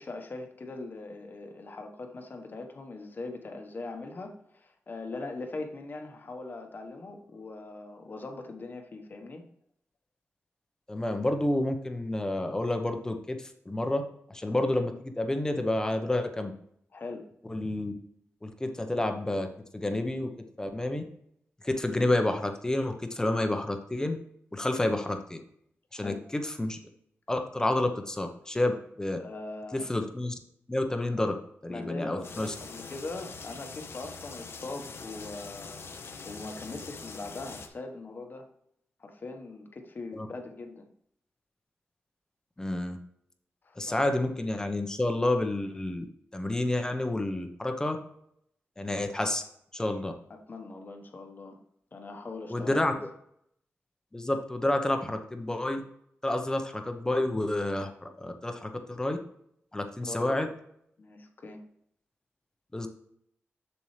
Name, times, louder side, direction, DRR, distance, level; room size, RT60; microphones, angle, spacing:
voice 1, 0.0-9.4 16.9-17.2 26.0-26.3 29.2-29.9 31.7-38.5 39.0-40.9 43.6-44.1 50.3-51.6 51.9-53.0 60.0-60.5 61.0-61.6, left 3 dB, 45° left, 4 dB, 1.2 m, -41 dB
voice 2, 10.9-14.0 14.3-16.5 17.5-17.9 18.4-19.5 19.7-20.3 20.6-21.0 21.6-24.2 24.5-25.4 25.9-26.8 27.3-28.7 29.0-29.2 29.7-30.3 30.7-31.4 31.6-32.5 40.2-40.3 42.6-43.0 43.8-46.1 46.3-48.0 48.8-49.4 49.7-50.1 52.5-52.9 54.1-55.8 56.2-59.2 59.7-60.5 62.7-62.9, left 1 dB, 15° left, 5 dB, 0.9 m, -29 dB
sound 1, 32.2-37.7, left 4 dB, 60° left, 0.9 m, -44 dB
7.2 x 7.1 x 3.3 m, 0.70 s
wide cardioid pair, 140°, 5 cm